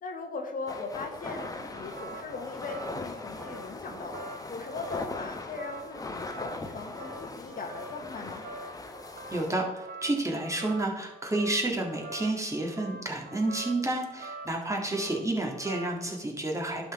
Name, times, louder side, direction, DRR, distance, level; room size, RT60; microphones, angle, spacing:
voice 1, 0.0-4.2 4.5-8.4, left 4 dB, 45° left, 3 dB, 1.2 m, -39 dB
sound 1, 0.7-9.5, left 2 dB, 20° left, 1.0 m, -40 dB
sound 2, 0.8-16.1, right 2 dB, 55° right, 0.9 m, -45 dB
voice 2, 9.3-16.9, right 2 dB, 15° right, 0 dB, 1.8 m, -30 dB
11.0 x 4.2 x 3.6 m, 1.0 s
hypercardioid pair, 50°, 19 cm